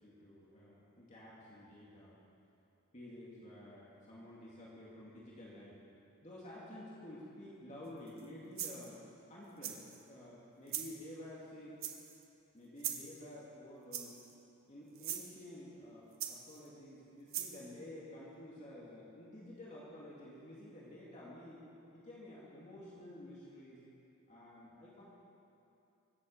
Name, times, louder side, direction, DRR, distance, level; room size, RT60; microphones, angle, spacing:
voice 1, 0.0-2.2 2.9-5.8 6.2-9.0 9.3-9.8 10.1-11.8 12.5-14.2 14.7-21.6 21.9-23.8 24.3-25.0, left 1 dB, 35° left, -7 dB, 2.3 m, -51 dB
sound 1, 8.1-8.2 8.6-8.9 9.6-10.0 10.7-10.9 11.8-12.2 12.8-13.1 13.9-14.3 14.9-15.2 16.2-16.7 17.3-17.6, right 10 dB, 70° right, 1.3 m, -40 dB
23.5 x 8.5 x 6.5 m, 2.9 s
head